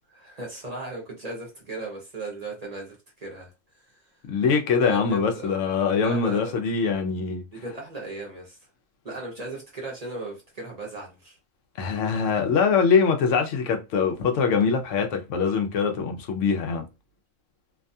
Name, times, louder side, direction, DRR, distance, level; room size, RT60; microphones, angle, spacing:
voice 1, 0.1-4.1 4.8-5.7 5.9-6.5 7.5-8.6 9.0-11.4, right 2 dB, 40° right, 0.8 m, -37 dB
voice 2, 4.3-7.5 11.8-16.8, left 5 dB, 85° left, 0.9 m, -23 dB
2.6 x 2.2 x 2.6 m
omnidirectional pair, 1.2 m